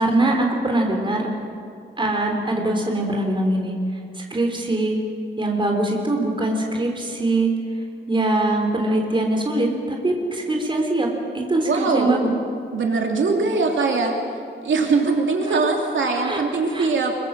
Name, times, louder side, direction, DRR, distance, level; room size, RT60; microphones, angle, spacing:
voice 1, 0.0-1.3 2.0-3.8 4.1-5.0 5.4-7.5 8.1-11.1 11.3-12.3 15.5-15.6 16.2-16.4 16.7-16.9, right 2 dB, 25° right, 1 dB, 3.8 m, -22 dB
voice 2, 11.6-12.1 12.7-14.2 14.6-17.2, right 4 dB, 85° right, 1 dB, 3.2 m, -21 dB
25.5 x 23.0 x 7.6 m, 2.4 s
wide cardioid pair, 175°, 19 cm